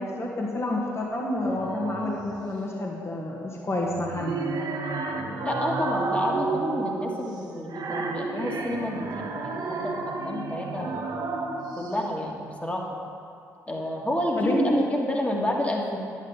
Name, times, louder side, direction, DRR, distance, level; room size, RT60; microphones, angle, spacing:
voice 1, 0.0-4.3 10.8-10.9 14.4-14.8, left 1 dB, 30° left, -2 dB, 1.8 m, -28 dB
sound 1, 1.4-2.3 3.9-12.0, right 3 dB, 55° right, 1.2 m, -31 dB
voice 2, 5.4-10.9 11.8-12.9 13.7-16.0, left 1 dB, 15° left, -1 dB, 2.1 m, -30 dB
10.5 x 9.1 x 4.1 m, 2.4 s
hypercardioid pair, 45°, 9 cm